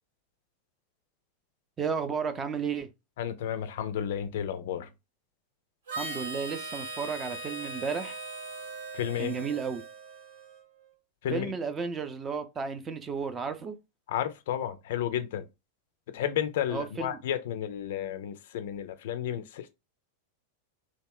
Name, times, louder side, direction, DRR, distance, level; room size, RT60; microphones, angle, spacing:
voice 1, 1.8-2.9 6.0-8.2 9.2-9.8 11.3-13.8 16.7-17.2, right 5 dB, 20° right, 0.5 m, -33 dB
voice 2, 3.2-4.9 8.9-9.3 11.2-11.5 14.1-15.5 16.1-19.7, left 10 dB, 55° left, 0.4 m, -32 dB
Harmonica, 5.9-10.6, right 2 dB, 60° right, 0.8 m, -39 dB
3.0 x 2.1 x 3.5 m
figure-of-eight pair, 90°, 0 cm